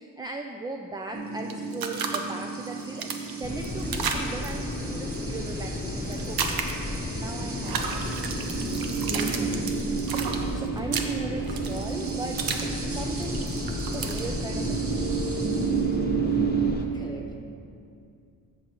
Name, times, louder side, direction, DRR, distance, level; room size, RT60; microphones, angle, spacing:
voice 1, 0.0-3.1 3.4-6.6 7.2-7.9 10.5-13.6 13.9-15.3 16.2-16.4, right 3 dB, 15° right, 3 dB, 0.3 m, -38 dB
sound 1, 1.1-16.7, right 6 dB, 40° right, 0.9 m, -32 dB
sound 2, 1.5-2.2 2.7-4.5 6.1-7.0 7.6-12.7 13.0-14.3, right 6 dB, 90° right, 0.8 m, -32 dB
sound 3, 3.4-16.9, left 2 dB, 25° left, 0.9 m, -33 dB
voice 2, 9.1-9.8 16.9-17.4, equal, 10° left, -1 dB, 1.2 m, -36 dB
13.5 x 6.7 x 3.0 m, 2.4 s
wide cardioid pair, 125°, 35 cm